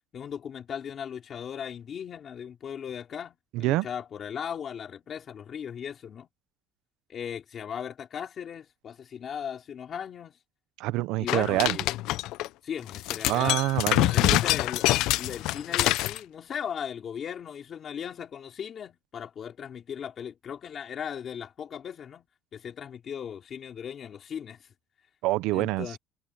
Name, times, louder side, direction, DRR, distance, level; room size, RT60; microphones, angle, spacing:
voice 1, 0.1-6.3 7.1-10.4 11.2-11.9 12.6-13.6 14.1-22.3 22.5-24.7 25.5-26.0, left 8 dB, 35° left, 3.4 m, -37 dB
voice 2, 3.5-3.9 10.8-11.8 13.3-14.4 25.2-26.0, right 18 dB, 80° right, 0.6 m, -26 dB
sound 1, 11.3-12.5 12.9-16.2, left 17 dB, 70° left, 0.4 m, -25 dB
cardioid pair, 170°, 0 cm